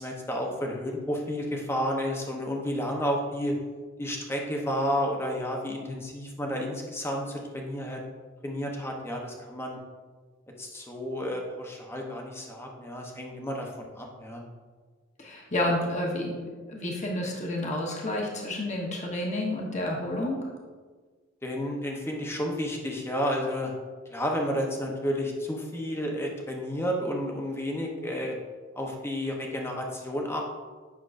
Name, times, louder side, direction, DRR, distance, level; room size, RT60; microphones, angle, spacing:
voice 1, 0.0-3.6 4.0-8.0 8.4-9.8 10.6-14.4 21.4-23.7 24.1-28.4 28.7-30.4, equal, 15° left, 0 dB, 0.9 m, -31 dB
voice 2, 15.2-20.4, left 1 dB, 35° left, -1 dB, 1.1 m, -30 dB
8.3 x 6.1 x 2.6 m, 1.4 s
head